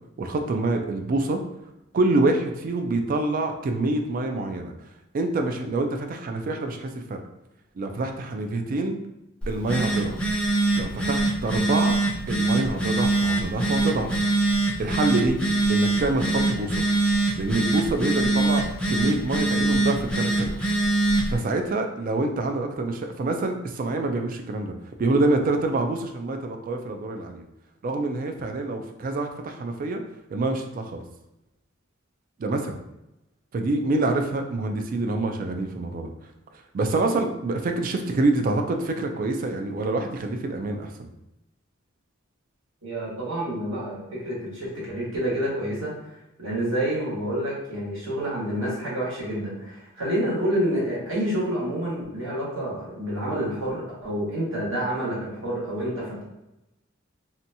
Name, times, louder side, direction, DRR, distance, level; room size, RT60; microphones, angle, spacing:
voice 1, 0.2-1.4 1.9-4.7 5.1-7.2 7.8-9.0 9.5-10.2 10.7-12.0 12.3-14.1 14.8-15.4 15.7-16.8 17.4-18.6 18.9-20.6 21.3-24.7 25.0-27.5 27.8-30.0 30.3-31.0 32.4-32.7 33.5-36.1 36.7-41.1, right 2 dB, 45° right, 5 dB, 0.3 m, -26 dB
Telephone, 9.4-21.4, right 2 dB, 5° left, 0.5 m, -24 dB
voice 2, 42.8-45.9 46.4-56.2, right 1 dB, 70° right, -7 dB, 1.3 m, -28 dB
2.8 x 2.2 x 2.6 m, 0.92 s
head